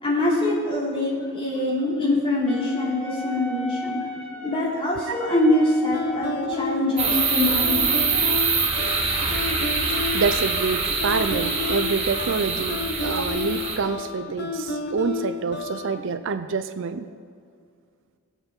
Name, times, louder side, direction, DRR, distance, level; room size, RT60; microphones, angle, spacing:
voice 1, 0.0-4.0 4.4-8.0, left 1 dB, 25° left, -5 dB, 2.9 m, -24 dB
Wind instrument woodwind instrument, 2.5-6.6, left 2 dB, 5° left, 1.2 m, -36 dB
sound 1, 5.9-16.0, left 4 dB, 50° left, 1.0 m, -31 dB
sound 2, 7.0-13.8, right 4 dB, 25° right, 1.5 m, -24 dB
voice 2, 10.1-17.1, right 5 dB, 55° right, 11 dB, 0.5 m, -27 dB
19.0 x 8.1 x 4.4 m, 2.2 s
head